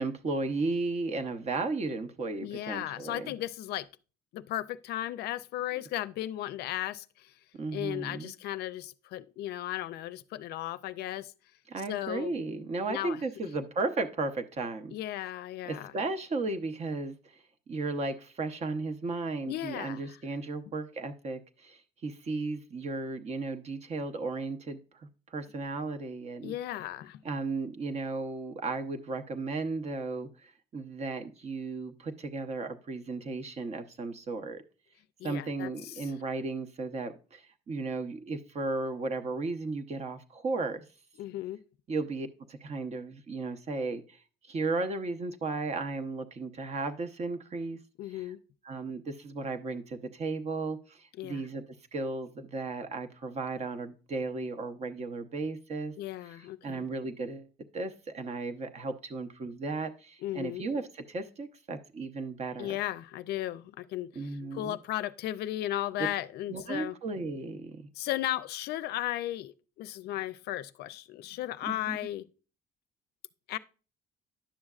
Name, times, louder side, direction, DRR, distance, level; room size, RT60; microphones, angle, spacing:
voice 1, 0.0-3.3 7.5-8.3 11.7-14.9 15.7-17.4 17.7-26.5 27.2-34.6 35.2-40.8 41.9-44.2 44.4-47.8 48.6-51.6 51.9-55.9 56.6-62.8 64.2-64.8 66.5-67.8 71.7-72.0, right 3 dB, 40° right, 0.8 m, -35 dB
voice 2, 2.4-3.9 4.3-7.3 7.7-11.3 11.9-12.3 12.9-13.2 14.9-15.9 19.5-20.2 26.4-27.2 35.2-36.1 41.2-41.6 48.0-48.4 51.2-51.4 56.0-56.9 60.2-60.6 62.6-67.0 68.0-72.3 73.5-73.6, left 14 dB, 70° left, 0.4 m, -35 dB
10.0 x 6.3 x 2.4 m
cardioid pair, 110°, 17 cm